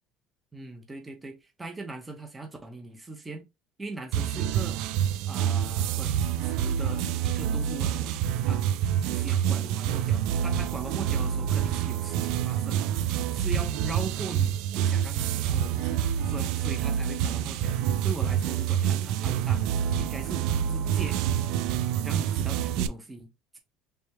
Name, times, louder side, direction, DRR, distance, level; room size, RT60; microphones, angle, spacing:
voice 1, 0.5-3.5 3.8-4.8 5.3-8.1 8.4-8.6 9.1-12.9 13.3-17.8 18.0-19.7 20.0-20.4 20.7-21.2 22.0-23.6, right 3 dB, 10° right, 0.7 m, -40 dB
sound 1, 4.1-22.9, right 9 dB, 70° right, 0.3 m, -27 dB
3.3 x 3.2 x 2.9 m
cardioid pair, 165°, 0 cm